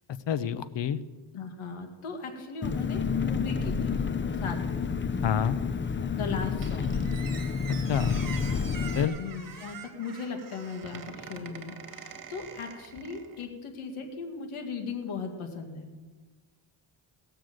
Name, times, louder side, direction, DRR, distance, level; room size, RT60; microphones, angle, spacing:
voice 1, 0.3-1.0 5.2-5.6 7.7-8.2 8.9-9.1, left 8 dB, 60° left, 15 dB, 0.8 m, -27 dB
voice 2, 1.3-4.0 4.4-4.9 6.1-7.0 9.2-15.9, left 4 dB, 80° left, 4 dB, 2.0 m, -37 dB
Engine, 2.6-9.1, left 6 dB, 25° left, 0.5 m, -29 dB
Squeak, 6.6-13.5, right 6 dB, 40° right, 1.8 m, -44 dB
18.0 x 6.9 x 7.8 m, 1.3 s
cardioid pair, 85°, 49 cm